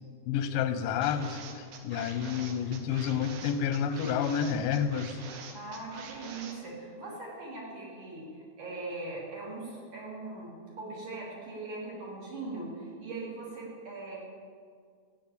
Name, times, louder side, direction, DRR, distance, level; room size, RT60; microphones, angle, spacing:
voice 1, 0.3-5.2, left 8 dB, 75° left, 10 dB, 2.2 m, -30 dB
sound 1, 1.0-6.5, right 6 dB, 70° right, 2.9 m, -46 dB
voice 2, 5.5-14.2, right 2 dB, 50° right, -5 dB, 4.7 m, -40 dB
14.5 x 8.7 x 8.6 m, 2.1 s
omnidirectional pair, 4.6 m